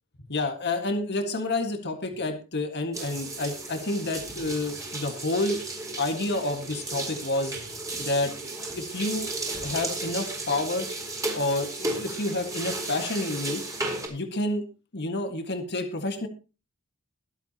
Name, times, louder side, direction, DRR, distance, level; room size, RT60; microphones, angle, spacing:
voice 1, 0.3-5.6 6.0-7.5 8.0-9.3 9.6-10.9 11.3-13.6 14.1-14.6 14.9-16.3, left 2 dB, 50° left, 6 dB, 1.8 m, -29 dB
sound 1, 2.9-14.1, right 2 dB, 15° right, 4.0 m, -34 dB
22.0 x 8.2 x 2.9 m, 0.30 s
head